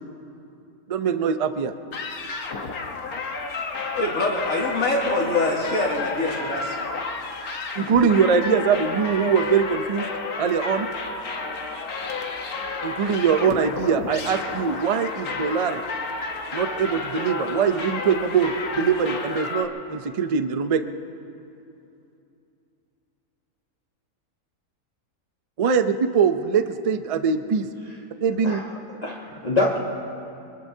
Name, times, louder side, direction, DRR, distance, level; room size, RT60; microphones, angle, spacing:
voice 1, 0.9-1.7 7.8-10.0 10.4-10.9 12.8-15.8 16.5-20.8 25.6-27.7 28.2-28.6, right 6 dB, 65° right, 9 dB, 0.3 m, -22 dB
sound 1, 1.9-19.7, left 4 dB, 80° left, 1.7 m, -31 dB
voice 2, 3.9-6.8, left 2 dB, 65° left, -3 dB, 2.8 m, -24 dB
voice 3, 29.0-29.8, left 2 dB, 30° left, -5 dB, 1.3 m, -25 dB
25.0 x 21.0 x 2.8 m, 2.8 s
omnidirectional pair, 1.5 m